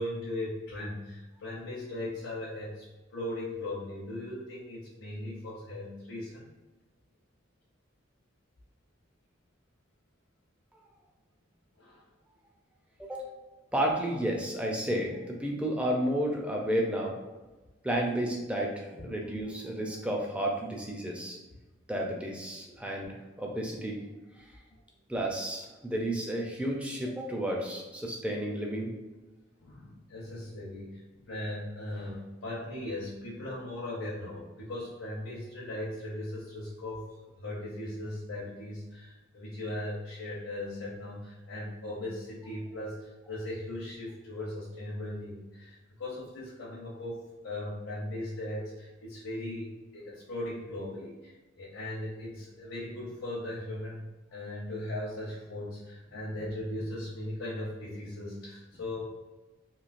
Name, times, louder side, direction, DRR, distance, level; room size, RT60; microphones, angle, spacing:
voice 1, 0.0-2.9 3.1-6.5 11.8-12.0 29.6-51.3 51.6-59.0, left 1 dB, 75° left, -6 dB, 0.7 m, -38 dB
voice 2, 13.7-17.1 17.8-21.4 21.9-24.0 25.1-28.9, right 1 dB, 5° right, -1 dB, 0.4 m, -32 dB
3.1 x 2.7 x 2.5 m, 1.1 s
head